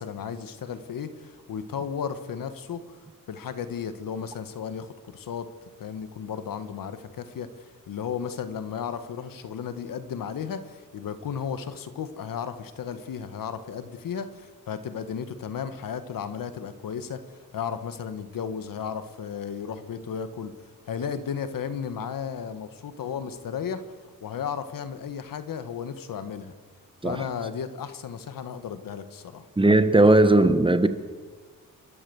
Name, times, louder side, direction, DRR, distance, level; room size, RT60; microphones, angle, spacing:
voice 1, 0.0-2.8 3.3-5.5 5.8-7.5 7.9-20.5 20.9-23.8 24.2-26.5 27.0-29.4, left 7 dB, 75° left, 1.7 m, -34 dB
voice 2, 29.6-30.9, right 2 dB, 15° right, 1.4 m, -18 dB
28.5 x 13.0 x 7.1 m
cardioid pair, 95°, 34 cm